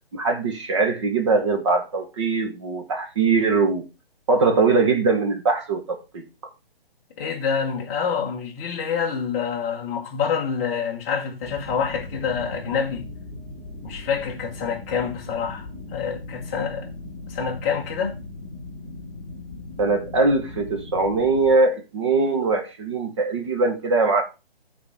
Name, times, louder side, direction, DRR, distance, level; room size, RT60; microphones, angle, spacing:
voice 1, 0.1-3.8 4.3-6.2 19.8-24.2, right 3 dB, 30° right, 1.1 m, -21 dB
voice 2, 7.2-13.1 13.8-16.9 17.3-18.2, left 6 dB, 15° left, 0.8 m, -27 dB
sound 1, 11.4-21.5, left 2 dB, 5° right, 2.1 m, -38 dB
13.0 x 4.3 x 3.5 m
hypercardioid pair, 160°, 30 cm